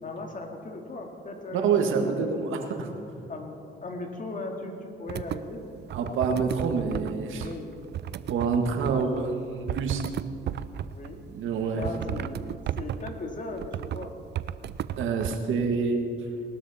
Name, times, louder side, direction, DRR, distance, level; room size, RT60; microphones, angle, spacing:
voice 1, 0.0-2.2 3.3-5.7 7.3-7.8 10.9-11.2 11.7-14.1, left 2 dB, 40° left, 3 dB, 2.2 m, -38 dB
voice 2, 1.5-2.9 5.9-7.5 8.3-10.0 11.3-11.8 15.0-16.1, right 5 dB, 80° right, 4 dB, 1.7 m, -27 dB
sound 1, 5.1-5.4 5.9-7.1 7.4-9.3 9.7-11.1 11.8-13.1 13.6-14.1 14.3-15.4, right 11 dB, 60° right, 0.5 m, -34 dB
19.5 x 12.5 x 4.2 m, 2.5 s
cardioid pair, 90°, 20 cm